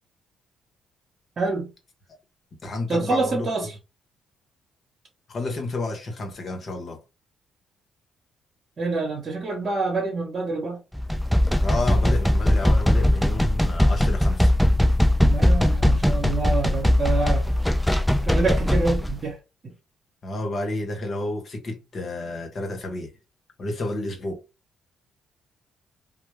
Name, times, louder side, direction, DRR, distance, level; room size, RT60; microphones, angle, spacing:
voice 1, 1.4-1.7 2.9-3.8 8.8-10.8 15.2-17.5 18.2-19.4 19.6-19.7, right 3 dB, 45° right, 1.0 m, -26 dB
voice 2, 2.6-3.5 5.3-7.0 11.6-14.5 14.9-15.0 20.2-23.1 23.6-24.4, left 2 dB, 50° left, 0.8 m, -30 dB
sound 1, 10.9-19.1, left 1 dB, ahead, 0.4 m, -20 dB
2.2 x 2.0 x 3.1 m
cardioid pair, 90°, 0 cm